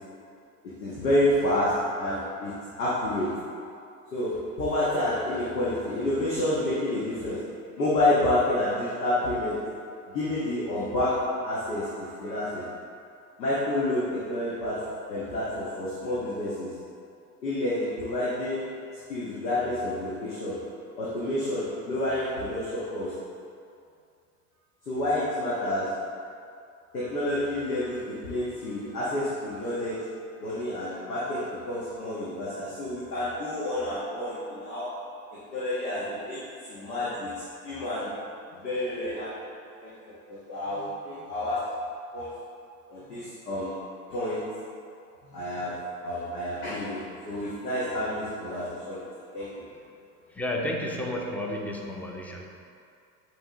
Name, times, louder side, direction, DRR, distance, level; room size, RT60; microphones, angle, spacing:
voice 1, 0.8-2.5 2.8-3.3 4.1-7.4 7.8-9.6 10.1-11.2 11.4-12.7 13.4-16.7 17.4-18.6 19.1-20.6 21.0-23.1 24.9-25.9 26.9-30.0 30.4-34.9 35.5-37.3 37.6-38.1 38.6-39.3 39.8-41.6 42.1-42.3 42.9-43.7 44.1-44.4 45.2-45.7 46.0-49.1 49.3-49.6, left 1 dB, 80° left, -9 dB, 1.5 m, -29 dB
voice 2, 50.3-52.5, left 1 dB, 5° left, 0 dB, 0.6 m, -32 dB
8.5 x 3.9 x 3.7 m, 2.5 s
hypercardioid pair, 85°, 48 cm